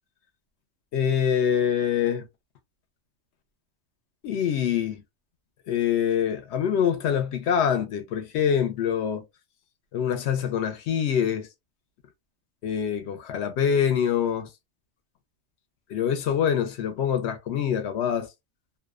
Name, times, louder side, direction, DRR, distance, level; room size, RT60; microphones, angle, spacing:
voice 1, 0.9-2.3 4.2-5.0 5.7-9.2 9.9-11.5 12.6-14.5 15.9-18.3, left 8 dB, 70° left, 0.8 m, -25 dB
2.5 x 2.1 x 2.3 m
omnidirectional pair, 1.2 m